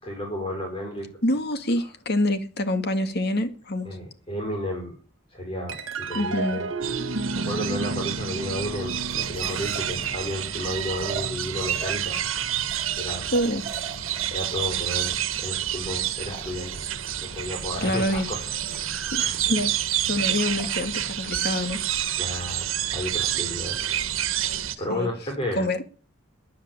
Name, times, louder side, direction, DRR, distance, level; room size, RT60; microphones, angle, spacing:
voice 1, 0.0-1.1 3.8-4.9 5.3-6.7 7.4-12.6 13.0-13.3 14.3-16.8 17.2-19.4 22.2-23.8 24.8-25.7, left 1 dB, 25° left, 5.1 m, -32 dB
voice 2, 1.2-3.9 6.1-6.6 13.3-13.7 17.8-18.3 19.1-19.7 20.1-21.8 24.9-25.1 25.6-25.8, left 1 dB, 55° left, 2.1 m, -26 dB
sound 1, 5.7-12.4, right 3 dB, 70° right, 2.1 m, -33 dB
sound 2, 6.8-24.7, right 10 dB, 85° right, 1.4 m, -29 dB
sound 3, 8.5-24.7, right 4 dB, 35° right, 2.9 m, -44 dB
13.0 x 10.0 x 9.2 m
head